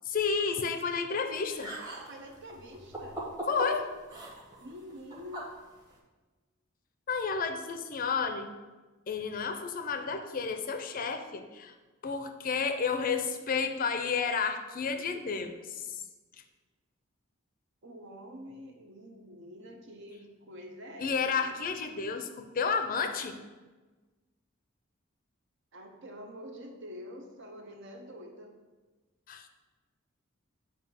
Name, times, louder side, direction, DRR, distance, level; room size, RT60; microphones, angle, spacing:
voice 1, 0.1-1.7 3.5-3.9 7.1-8.5 9.1-11.7 12.0-16.0 21.0-23.4 29.3-29.5, left 5 dB, 45° left, 7 dB, 0.5 m, -31 dB
sound 1, 1.3-6.0, right 1 dB, 20° right, 1.1 m, -42 dB
voice 2, 1.8-3.2 4.6-5.4 17.8-21.5 25.7-28.5, equal, 60° right, 3 dB, 0.9 m, -46 dB
7.1 x 2.7 x 5.6 m, 1.2 s
head